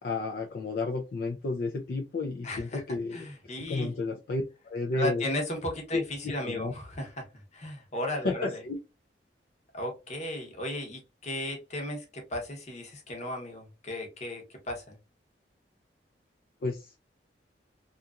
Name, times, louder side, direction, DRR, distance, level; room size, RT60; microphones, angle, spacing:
voice 1, 0.0-3.2 3.7-5.2 5.9-6.7 8.2-8.8 16.6-17.0, left 3 dB, 60° left, 2 dB, 0.4 m, -32 dB
voice 2, 2.4-2.8 3.1-3.9 4.9-7.3 7.5-8.6 9.7-15.0, left 1 dB, 40° left, 2 dB, 0.9 m, -35 dB
2.8 x 2.4 x 2.3 m, 0.26 s
head